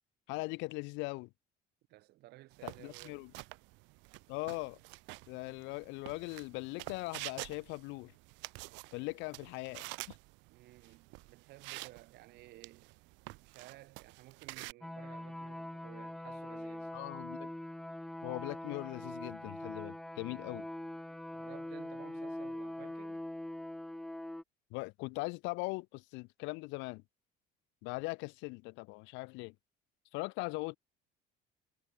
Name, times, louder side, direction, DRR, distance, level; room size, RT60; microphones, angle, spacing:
voice 1, 0.3-1.3 2.6-3.3 4.3-4.8 5.3-8.1 8.9-10.2 16.9-17.5 18.2-20.7 24.7-27.0 27.8-29.5 30.1-30.8, left 26 dB, 80° left, 0.7 m, -40 dB
voice 2, 1.9-3.3 10.5-13.0 13.4-16.9 21.3-23.2, right 18 dB, 60° right, 6.9 m, -56 dB
sound 1, 2.5-14.7, right 25 dB, 80° right, 1.2 m, -49 dB
sound 2, 14.8-24.4, left 1 dB, ahead, 0.4 m, -43 dB
cardioid pair, 175°, 19 cm